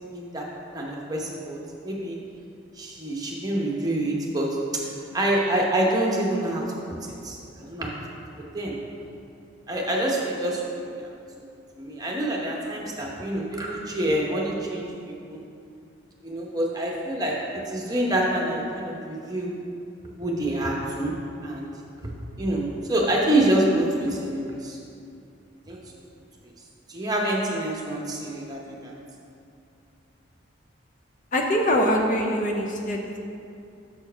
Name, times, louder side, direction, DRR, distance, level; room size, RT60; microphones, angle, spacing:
voice 1, 0.1-0.4 0.7-2.2 2.8-4.5 5.1-8.0 8.5-8.8 9.7-11.1 11.4-11.5 11.8-14.8 15.3-15.4 16.2-17.4 17.7-19.5 20.2-21.1 21.4-21.7 22.4-24.8 25.7-25.8 26.9-28.9, right 1 dB, 20° right, -2 dB, 0.8 m, -26 dB
voice 2, 31.3-33.2, equal, 40° left, 1 dB, 0.5 m, -23 dB
6.8 x 4.5 x 5.5 m, 2.5 s
head